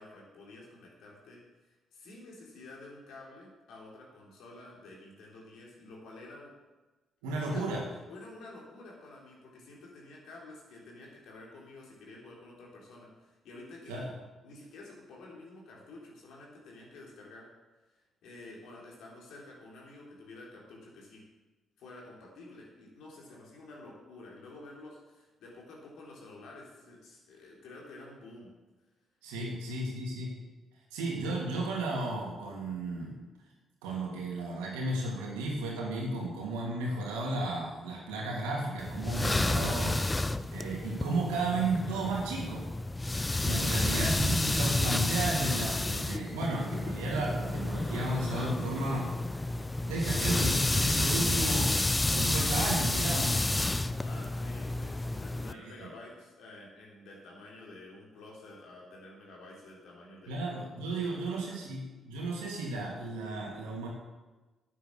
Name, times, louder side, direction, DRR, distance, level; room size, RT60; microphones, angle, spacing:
voice 1, 0.0-6.5 7.5-7.7 8.1-14.1 14.4-17.5 18.2-21.2 21.8-28.5 29.4-29.5 43.7-44.0 54.0-60.4 61.0-61.6, left 2 dB, 75° left, -2 dB, 3.6 m, -50 dB
voice 2, 7.2-7.9 13.9-14.1 29.2-30.3 30.9-33.1 33.8-40.0 40.5-42.6 43.4-49.1 49.8-51.8 52.0-53.3 55.5-55.9 60.3-63.9, right 2 dB, 85° right, -2 dB, 2.9 m, -33 dB
sound 1, 38.8-55.5, left 2 dB, 20° left, 0.7 m, -30 dB
9.6 x 8.8 x 7.0 m, 1.2 s
hypercardioid pair, 50°, 0 cm